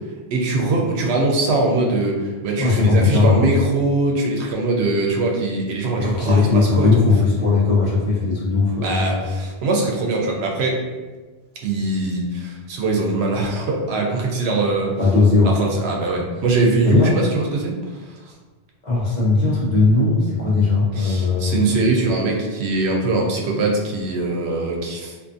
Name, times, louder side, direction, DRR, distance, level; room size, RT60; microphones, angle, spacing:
voice 1, 0.3-7.0 8.8-10.8 11.6-15.0 15.6-18.0 20.9-25.1, right 2 dB, 80° right, -1 dB, 0.8 m, -22 dB
voice 2, 2.6-3.5 5.9-9.2 15.0-15.6 16.8-17.1 18.8-21.6, left 3 dB, 50° left, -7 dB, 0.8 m, -18 dB
2.5 x 2.4 x 2.5 m, 1.3 s
omnidirectional pair, 1.1 m